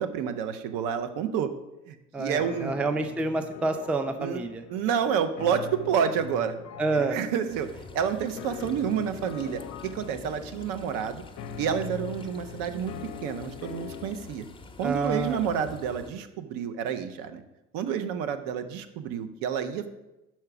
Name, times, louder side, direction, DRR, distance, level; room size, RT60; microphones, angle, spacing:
voice 1, 0.0-1.5 1.9-2.7 4.2-4.4 4.7-6.5 6.9-11.2 11.6-12.9 13.2-14.4 14.8-17.4 17.7-19.9, right 7 dB, 65° right, 9 dB, 0.8 m, -29 dB
voice 2, 2.1-4.6 6.8-7.2 14.8-15.4, right 3 dB, 5° right, 8 dB, 0.4 m, -28 dB
sound 1, 2.4-14.4, left 7 dB, 45° left, 0.6 m, -42 dB
sound 2, 7.5-16.1, left 3 dB, 15° left, 0.7 m, -47 dB
5.7 x 4.5 x 5.9 m, 0.95 s
hypercardioid pair, 80°, 37 cm